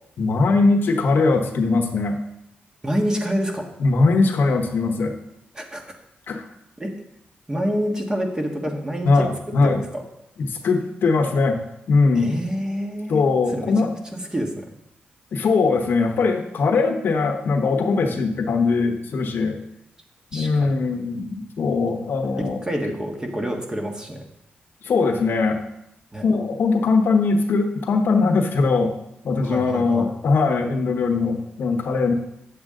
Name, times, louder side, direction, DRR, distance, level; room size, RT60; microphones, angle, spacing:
voice 1, 0.2-2.2 3.8-5.1 6.3-6.4 9.0-9.8 10.4-11.6 11.9-12.3 13.1-13.9 15.3-19.6 20.3-22.6 24.8-25.6 26.2-28.9 29.2-32.1, left 4 dB, 70° left, 5 dB, 1.0 m, -20 dB
voice 2, 2.8-3.7 5.5-5.8 6.8-6.9 7.5-9.1 9.6-10.0 12.1-13.2 13.5-14.7 20.3-20.7 22.6-24.2 26.1-26.2 29.4-30.1, equal, 20° right, 2 dB, 1.6 m, -27 dB
8.8 x 7.6 x 3.8 m, 0.82 s
cardioid pair, 85°, 4 cm